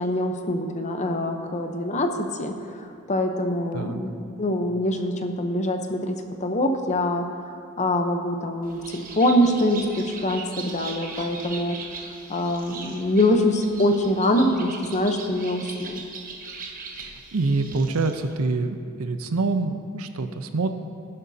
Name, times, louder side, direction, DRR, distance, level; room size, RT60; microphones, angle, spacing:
voice 1, 0.0-4.1 4.4-7.3 7.8-11.8 12.3-16.0, left 1 dB, 35° left, 5 dB, 0.8 m, -24 dB
Bird, 8.6-18.3, right 4 dB, 40° right, 1.1 m, -39 dB
voice 2, 17.0-20.7, right 3 dB, 80° right, 8 dB, 0.7 m, -26 dB
15.0 x 11.0 x 2.8 m, 2.3 s
head